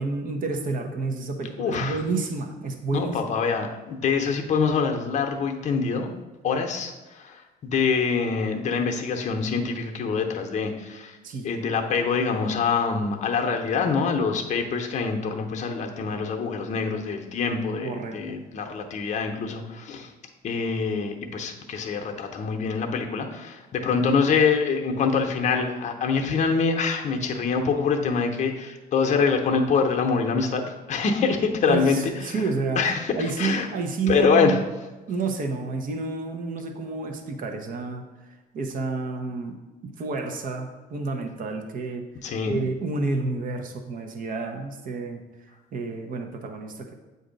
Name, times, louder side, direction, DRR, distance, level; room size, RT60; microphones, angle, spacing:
voice 1, 0.0-3.4 11.2-11.5 17.8-18.1 31.7-34.6 35.1-38.0 38.5-39.6 39.8-42.0 42.5-45.2 45.7-46.9, right 3 dB, 55° right, 4 dB, 0.8 m, -29 dB
voice 2, 1.6-2.0 2.9-6.1 6.4-11.2 11.4-20.1 20.4-32.4 32.8-33.7 34.1-34.6 42.2-42.6, left 5 dB, 45° left, 3 dB, 0.7 m, -25 dB
7.9 x 2.6 x 5.1 m, 1.2 s
cardioid pair, 110°, 17 cm